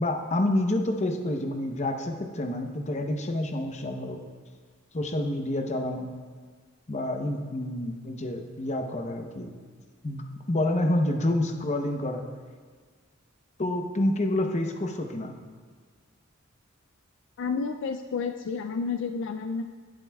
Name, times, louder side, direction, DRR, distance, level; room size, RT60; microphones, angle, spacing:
voice 1, 0.0-4.2 4.9-6.1 6.9-9.5 10.0-12.2 13.6-15.3, left 1 dB, 35° left, 4 dB, 0.8 m, -28 dB
voice 2, 17.4-19.6, left 5 dB, 65° left, 7 dB, 0.4 m, -30 dB
16.5 x 7.8 x 2.3 m, 1.5 s
head